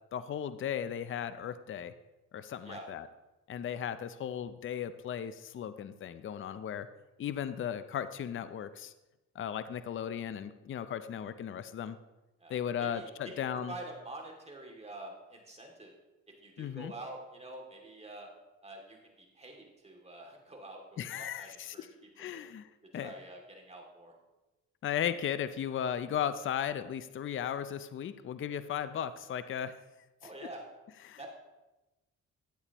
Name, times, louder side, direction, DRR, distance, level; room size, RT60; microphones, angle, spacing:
voice 1, 0.1-1.9 2.3-3.1 3.5-6.9 7.2-8.9 9.3-12.0 12.5-13.7 16.6-16.9 21.0-21.9 22.2-23.1 24.8-29.7 31.1-31.2, left 9 dB, 45° left, 12 dB, 0.5 m, -36 dB
voice 2, 12.4-15.9 16.4-18.3 18.6-22.4 22.9-24.1 30.2-30.6 31.2-31.3, right 2 dB, 20° right, 1 dB, 2.5 m, -47 dB
12.5 x 8.6 x 3.0 m, 1.0 s
cardioid pair, 90°, 30 cm